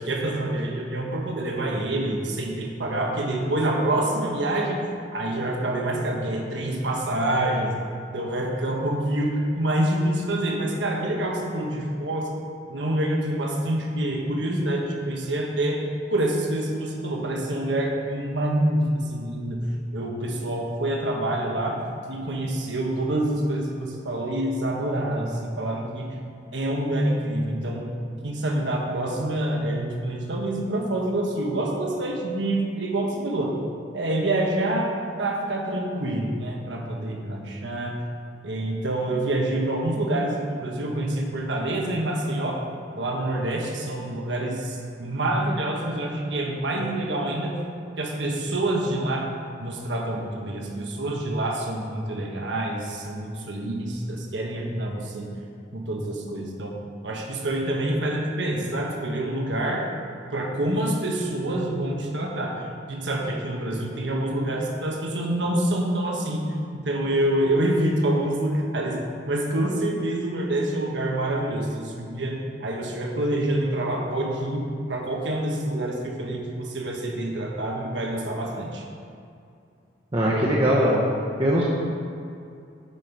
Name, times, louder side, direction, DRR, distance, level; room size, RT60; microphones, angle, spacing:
voice 1, 0.0-4.8 5.1-7.7 8.1-12.3 12.7-15.8 16.1-19.6 19.9-21.8 22.1-26.1 26.5-27.9 28.2-33.5 33.9-38.0 38.4-42.6 43.0-47.6 48.0-49.3 49.6-55.3 55.7-56.7 57.0-59.9 60.3-66.5 66.7-69.0 69.2-78.8, right 1 dB, 85° right, 0 dB, 1.2 m, -26 dB
voice 2, 80.1-81.0 81.4-81.6, equal, 30° right, -4 dB, 0.9 m, -20 dB
9.0 x 5.7 x 4.6 m, 2.5 s
head